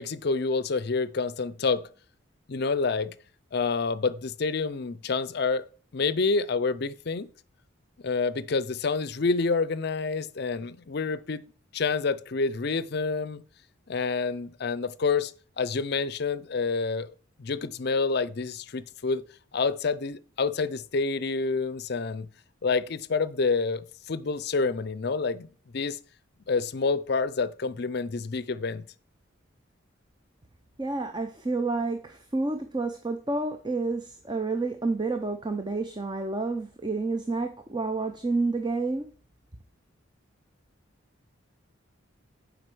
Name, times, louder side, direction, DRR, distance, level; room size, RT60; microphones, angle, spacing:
voice 1, 0.0-1.9 2.5-3.1 3.5-5.6 5.9-7.3 8.0-11.4 11.7-13.4 13.9-15.3 15.6-17.1 17.4-19.2 19.5-22.3 22.6-25.5 25.7-26.0 26.5-28.8, left 4 dB, 50° left, 0.5 m, -28 dB
voice 2, 30.8-39.1, right 3 dB, 20° right, 0.6 m, -29 dB
7.8 x 5.1 x 6.1 m
head